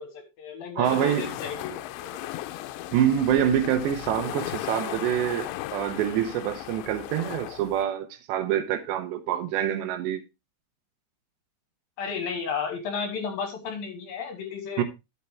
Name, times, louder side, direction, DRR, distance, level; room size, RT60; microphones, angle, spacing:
voice 1, 0.0-2.4 12.0-14.8, left 5 dB, 65° left, 2.6 m, -33 dB
sound 1, 0.8-7.8, left 15 dB, 80° left, 2.8 m, -36 dB
voice 2, 0.8-1.2 2.9-10.2 14.8-14.9, right 10 dB, 80° right, 3.0 m, -26 dB
11.0 x 6.9 x 3.4 m
omnidirectional pair, 5.3 m